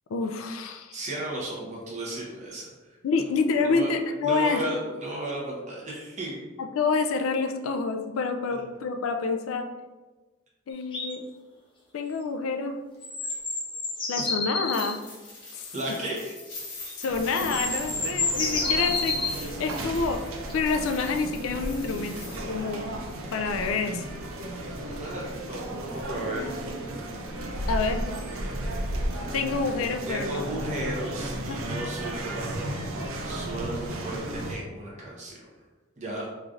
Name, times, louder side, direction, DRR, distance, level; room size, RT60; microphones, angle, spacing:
voice 1, 0.1-1.0 3.0-4.6 6.6-9.7 10.7-11.2 11.9-12.8 14.1-15.0 15.5-15.7 17.0-20.2 20.5-22.2 22.5-22.9 23.3-24.0 27.7-28.1 29.3-30.5 31.5-31.6, left 4 dB, 85° left, 6 dB, 0.3 m, -28 dB
voice 2, 0.9-2.7 3.6-3.9 4.2-6.5 8.5-8.6 14.2-14.3 15.7-16.3 23.6-24.0 24.8-26.4 30.1-32.7 33.2-35.4 36.0-36.2, right 1 dB, 35° right, -4 dB, 0.9 m, -34 dB
sound 1, 10.9-11.1 13.0-14.9 16.9-17.0 17.3-19.3 20.5-20.6, left 3 dB, 25° left, 0.6 m, -29 dB
sound 2, 14.6-22.4, left 2 dB, 55° left, 1.4 m, -44 dB
sound 3, 17.1-34.6, right 1 dB, 85° right, 0.5 m, -34 dB
3.8 x 3.2 x 2.4 m, 1.2 s
head